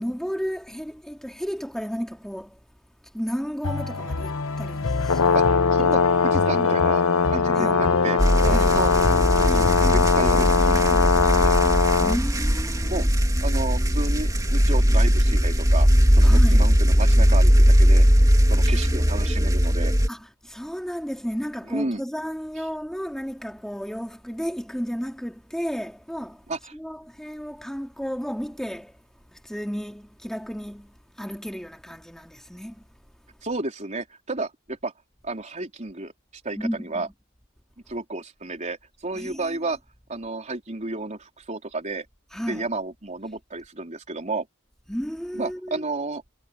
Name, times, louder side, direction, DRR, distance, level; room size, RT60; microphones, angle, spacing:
voice 1, 0.0-2.6 3.1-5.4 7.5-7.8 8.5-8.8 12.0-13.1 16.2-16.7 18.6-19.5 20.1-26.5 26.7-29.0 29.3-32.8 36.6-37.1 39.1-39.6 42.3-42.7 44.9-45.8, equal, ahead, 2.7 m, -33 dB
sound 1, 3.6-10.8, left 3 dB, 65° left, 1.1 m, -29 dB
Brass instrument, 5.0-12.2, left 5 dB, 85° left, 0.9 m, -20 dB
voice 2, 5.3-7.0 7.3-8.9 9.4-11.6 12.8-13.1 13.4-15.9 16.2-18.1 18.5-19.9 21.7-22.0 26.5-26.7 33.4-34.9 35.2-36.1 36.4-37.1 37.9-39.8 40.1-42.1 42.5-44.5 45.3-46.2, right 2 dB, 35° right, 4.1 m, -32 dB
sound 2, 8.2-20.1, equal, 15° right, 3.2 m, -19 dB
head